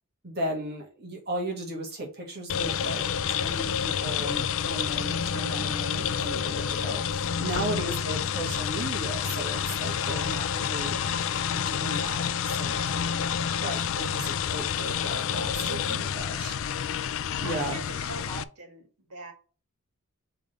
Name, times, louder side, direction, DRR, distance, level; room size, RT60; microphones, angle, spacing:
voice 1, 0.2-3.1 3.4-11.0 11.5-16.6 17.4-17.8, right 1 dB, 45° right, 1.7 m, -36 dB
sound 1, 2.5-18.4, left 8 dB, 60° left, 0.4 m, -29 dB
voice 2, 7.6-8.0 9.9-10.4 15.3-16.2 17.4-19.3, right 3 dB, 80° right, 1.8 m, -43 dB
5.0 x 3.5 x 5.4 m
head